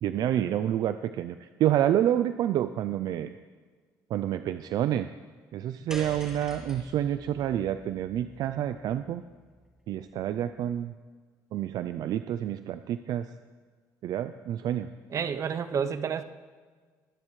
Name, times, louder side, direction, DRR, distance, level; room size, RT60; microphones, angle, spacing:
voice 1, 0.0-3.3 4.1-5.1 5.5-9.2 9.9-10.9 11.5-13.3 14.0-14.9, right 11 dB, 70° right, 11 dB, 0.4 m, -28 dB
sound 1, 5.9-10.3, right 1 dB, 10° right, 2.1 m, -46 dB
voice 2, 15.1-16.2, right 7 dB, 45° right, 10 dB, 0.8 m, -29 dB
22.0 x 10.5 x 3.2 m, 1.5 s
cardioid pair, 105°, 7 cm